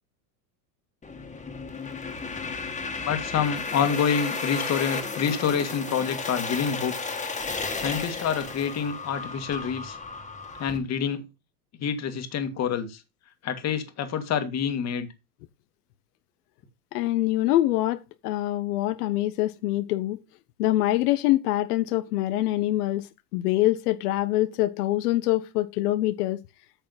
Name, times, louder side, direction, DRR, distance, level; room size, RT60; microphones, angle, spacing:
sound 1, 1.0-10.8, left 4 dB, 15° left, 1.8 m, -33 dB
voice 1, 3.0-6.9 7.7-10.0 10.6-11.2 11.8-13.0 13.4-15.1, left 7 dB, 35° left, 1.8 m, -27 dB
voice 2, 16.9-20.2 20.6-26.4, left 15 dB, 85° left, 0.9 m, -25 dB
9.2 x 6.5 x 4.0 m
supercardioid pair, 125°, 45 cm